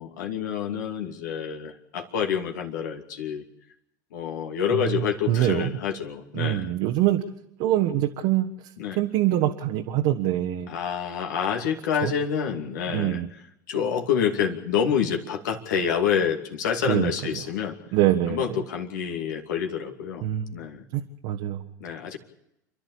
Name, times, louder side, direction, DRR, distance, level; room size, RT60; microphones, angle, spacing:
voice 1, 0.0-3.4 4.1-6.7 8.8-9.0 10.7-13.2 13.7-17.8 18.3-20.3 20.5-20.9 21.8-22.2, left 7 dB, 70° left, 3 dB, 2.6 m, -27 dB
voice 2, 4.7-5.7 6.3-7.2 7.6-8.5 8.9-10.7 12.0-12.1 12.9-13.3 16.8-17.4 17.9-18.4 20.2-20.5 20.9-21.6, right 13 dB, 55° right, 4 dB, 1.4 m, -24 dB
29.0 x 12.0 x 8.5 m, 0.82 s
figure-of-eight pair, 80°, 10 cm